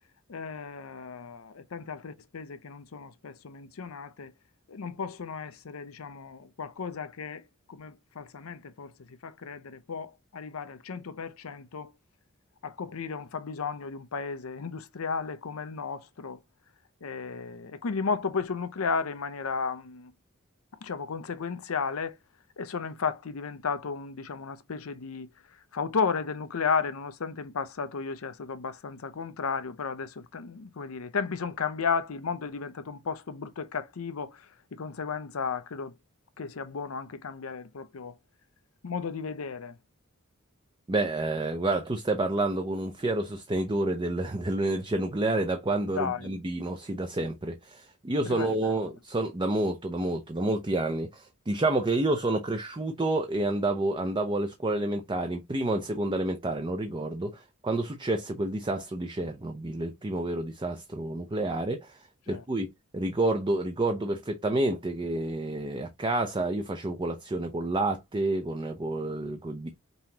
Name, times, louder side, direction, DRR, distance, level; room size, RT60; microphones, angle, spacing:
voice 1, 0.3-4.3 4.7-11.9 12.6-16.4 17.0-20.1 20.8-22.2 22.6-35.9 36.4-38.1 38.8-39.8 45.9-46.3 48.2-48.7 62.3-62.4, left 5 dB, 90° left, 0.6 m, -34 dB
voice 2, 40.9-62.0 62.3-69.7, right 2 dB, 20° right, 0.5 m, -29 dB
5.4 x 3.0 x 2.8 m
head